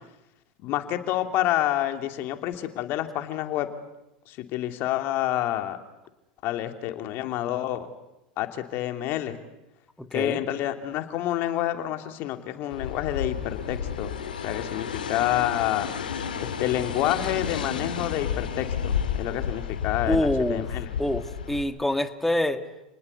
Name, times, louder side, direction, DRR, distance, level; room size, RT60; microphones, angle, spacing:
voice 1, 0.6-3.7 4.3-5.8 6.4-7.9 8.4-9.4 10.1-14.1 14.4-15.9 16.4-20.9, left 13 dB, 50° left, 7 dB, 2.9 m, -28 dB
voice 2, 10.0-10.4 20.1-20.7 21.0-22.6, left 1 dB, 5° left, 8 dB, 2.0 m, -26 dB
sound 1, 12.7-21.6, left 8 dB, 90° left, 2.8 m, -31 dB
30.0 x 19.5 x 8.3 m, 0.93 s
hypercardioid pair, 95°, 5 cm